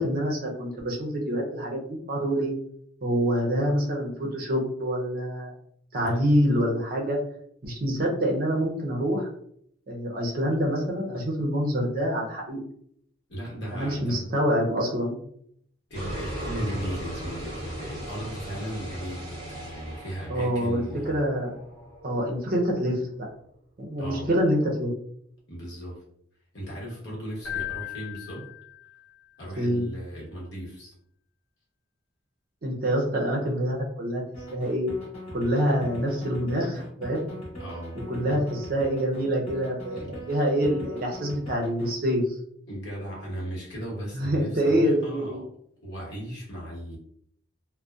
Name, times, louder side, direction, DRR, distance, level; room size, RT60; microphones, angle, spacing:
voice 1, 0.0-2.5 3.0-5.5 5.9-7.2 7.6-9.3 9.9-12.6 13.7-15.2 20.3-21.5 22.0-23.3 23.8-24.9 29.6-29.8 32.6-34.2 34.5-34.9 35.3-37.3 38.1-42.2 44.1-45.4, equal, 45° right, -1 dB, 0.5 m, -26 dB
voice 2, 13.3-14.4 15.9-21.2 24.0-24.3 25.5-26.0 26.5-28.5 29.4-30.9 37.6-38.0 38.3-38.6 39.9-40.3 42.7-45.5 45.8-47.0, equal, 60° left, -4 dB, 1.0 m, -36 dB
sound 1, 15.9-22.8, right 1 dB, 25° right, 0.8 m, -38 dB
Keyboard (musical), 27.4-29.3, left 11 dB, 90° left, 0.7 m, -37 dB
sound 2, 34.3-41.9, equal, 30° left, 0.8 m, -40 dB
2.6 x 2.1 x 2.3 m, 0.69 s
head